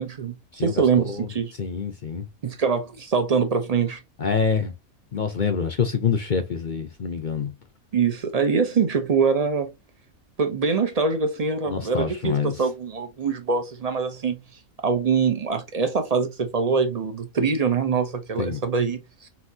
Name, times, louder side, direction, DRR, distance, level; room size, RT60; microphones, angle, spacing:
voice 1, 0.0-1.5 2.4-4.0 7.9-9.7 10.4-14.4 14.8-19.3, right 5 dB, 50° right, 0.4 m, -24 dB
voice 2, 0.5-1.3 1.6-2.3 4.2-4.7 5.1-7.5 11.7-12.5 18.4-18.6, left 6 dB, 50° left, 0.6 m, -26 dB
5.9 x 2.8 x 2.7 m
omnidirectional pair, 1.5 m